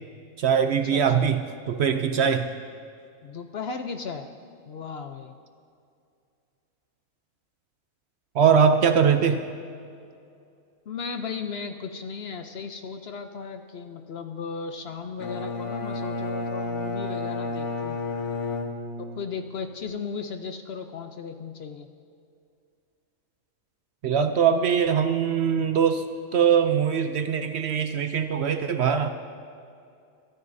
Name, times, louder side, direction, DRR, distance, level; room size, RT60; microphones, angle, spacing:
voice 1, 0.4-1.4 1.7-2.5 8.3-9.4 24.0-26.0 26.3-29.1, right 7 dB, 60° right, 8 dB, 0.8 m, -22 dB
voice 2, 3.2-4.3 4.7-5.3 10.9-18.0 19.2-21.9, left 5 dB, 60° left, 7 dB, 0.8 m, -35 dB
Bowed string instrument, 15.2-19.4, left 3 dB, 80° left, 1.4 m, -31 dB
23.0 x 12.5 x 2.7 m, 2.5 s
omnidirectional pair, 1.4 m